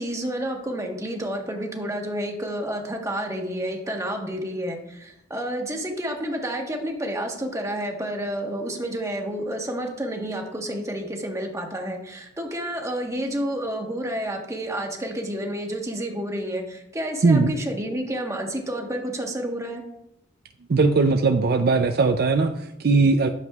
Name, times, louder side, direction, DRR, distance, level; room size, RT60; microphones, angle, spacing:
voice 1, 0.0-19.8, right 1 dB, 15° right, 2 dB, 1.3 m, -30 dB
voice 2, 17.2-17.5 20.7-23.3, right 3 dB, 55° right, 6 dB, 0.5 m, -19 dB
12.0 x 7.2 x 2.4 m, 0.80 s
head